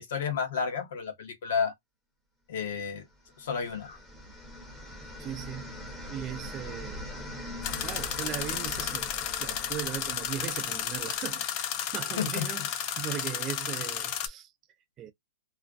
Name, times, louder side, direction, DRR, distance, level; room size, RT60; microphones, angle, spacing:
voice 1, 0.0-1.7 2.5-3.0 3.4-4.0 12.2-12.4, left 6 dB, 60° left, 0.8 m, -31 dB
sound 1, 3.3-11.3, left 1 dB, ahead, 0.8 m, -42 dB
voice 2, 5.2-5.8 6.1-7.1 7.5-9.1 9.4-14.5 15.0-15.1, right 11 dB, 25° right, 0.4 m, -38 dB
sound 2, 7.6-14.3, left 10 dB, 35° left, 0.4 m, -33 dB
2.4 x 2.1 x 2.4 m
hypercardioid pair, 145°, 0 cm